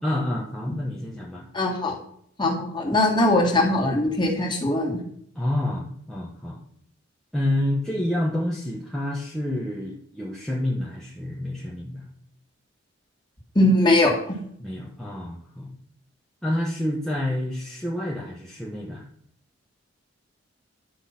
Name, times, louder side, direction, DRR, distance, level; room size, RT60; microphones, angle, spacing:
voice 1, 0.0-1.5 1.9-2.0 5.3-6.6 7.3-12.1 14.6-15.8 16.4-19.0, left 1 dB, ahead, -5 dB, 1.1 m, -28 dB
voice 2, 1.5-2.0 2.4-5.0 13.6-14.4, left 1 dB, 25° left, 0 dB, 2.0 m, -21 dB
10.5 x 5.0 x 5.8 m, 0.67 s
head